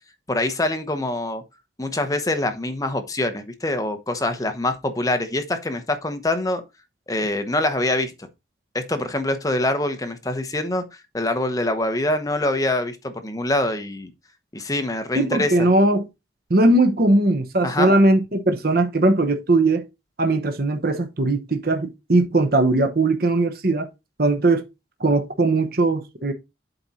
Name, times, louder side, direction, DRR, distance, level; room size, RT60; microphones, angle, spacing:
voice 1, 0.3-1.4 1.8-6.6 7.1-8.3 8.7-10.8 11.1-14.1 14.5-15.7 17.6-17.9, left 1 dB, 20° left, 1.0 m, -24 dB
voice 2, 15.2-16.1 16.5-19.8 20.2-23.9 24.2-24.6 25.0-26.3, right 2 dB, 55° right, 1.0 m, -19 dB
8.0 x 4.3 x 4.2 m
head